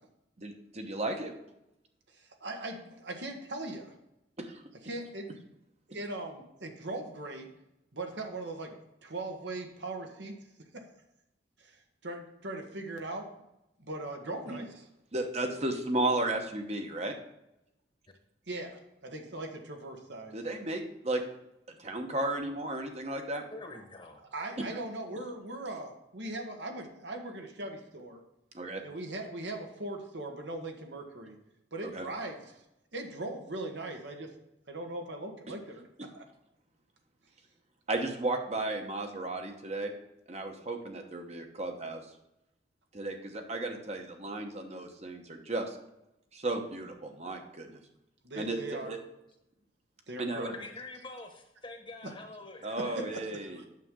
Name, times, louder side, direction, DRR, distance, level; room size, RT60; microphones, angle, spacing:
voice 1, 0.4-1.3 4.4-4.6 14.5-14.6 15.1-17.1 20.3-21.2 21.8-23.4 28.5-28.8 31.9-32.1 37.9-39.9 40.3-42.0 42.9-45.8 46.3-47.8 48.4-49.0 50.2-50.5 52.6-53.6, right 2 dB, 35° right, 4 dB, 1.1 m, -34 dB
voice 2, 2.1-3.9 4.8-5.3 5.9-7.5 7.9-8.7 9.0-10.3 11.6-11.8 12.0-13.3 13.8-14.9 18.5-20.4 24.3-28.2 28.8-31.4 31.7-32.6 32.9-34.3 34.7-35.9 36.1-36.2 48.2-48.9 50.1-50.5 52.8-52.9 53.5-53.6, right 2 dB, 70° right, 3 dB, 1.4 m, -39 dB
voice 3, 23.5-24.2 50.5-53.1, left 2 dB, 25° left, 4 dB, 1.2 m, -45 dB
9.1 x 6.8 x 3.8 m, 0.87 s
head